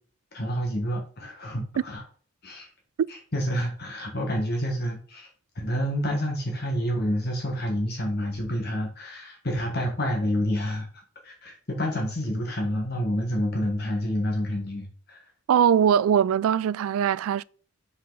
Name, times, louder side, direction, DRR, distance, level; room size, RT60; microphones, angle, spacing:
voice 1, 0.3-2.0 2.4-2.7 3.1-5.3 5.5-10.9 11.2-15.2, equal, 50° left, 1.4 m, -28 dB
voice 2, 15.5-17.4, right 8 dB, 85° right, 0.3 m, -21 dB
5.5 x 5.5 x 3.9 m
head